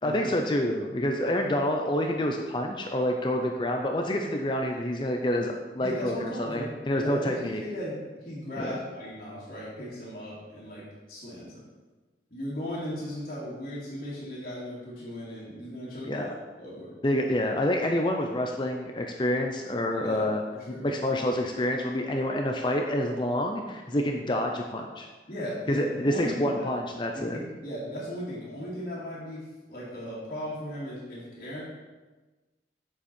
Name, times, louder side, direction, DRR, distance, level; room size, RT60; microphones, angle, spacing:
voice 1, 0.0-7.6 8.6-8.8 16.1-16.3 17.0-20.4 20.7-25.1 25.7-27.4, left 1 dB, 25° left, 2 dB, 0.6 m, -28 dB
voice 2, 5.8-6.7 7.0-11.6 12.3-16.9 19.9-21.2 25.3-26.6 27.1-31.6, equal, 50° left, -10 dB, 2.5 m, -37 dB
8.5 x 7.2 x 4.4 m, 1.2 s
head